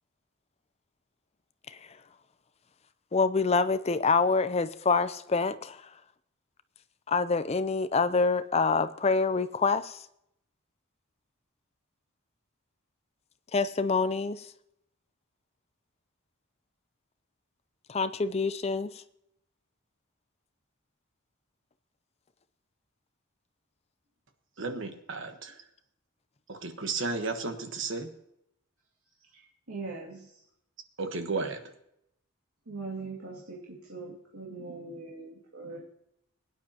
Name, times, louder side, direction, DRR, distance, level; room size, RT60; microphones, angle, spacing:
voice 1, 3.1-5.8 7.1-10.0 13.5-14.5 17.9-18.9, left 4 dB, 30° left, 0.5 m, -26 dB
voice 2, 24.6-25.6 26.5-28.1 31.0-31.6, right 3 dB, 60° right, 1.3 m, -33 dB
voice 3, 29.3-30.4 32.7-35.9, right 3 dB, 80° right, 2.3 m, -41 dB
22.0 x 9.6 x 2.9 m
head